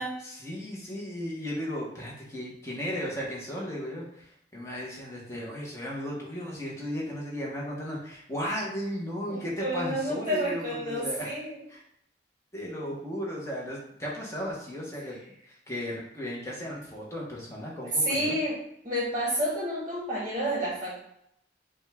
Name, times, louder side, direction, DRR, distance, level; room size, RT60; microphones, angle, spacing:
voice 1, 0.2-11.4 11.7-11.8 12.5-15.2 15.5-18.4, equal, 15° left, -4 dB, 1.0 m, -35 dB
voice 2, 9.3-11.6 18.0-18.6 18.8-21.0, equal, 25° right, -5 dB, 1.0 m, -30 dB
5.3 x 2.3 x 3.4 m, 0.74 s
head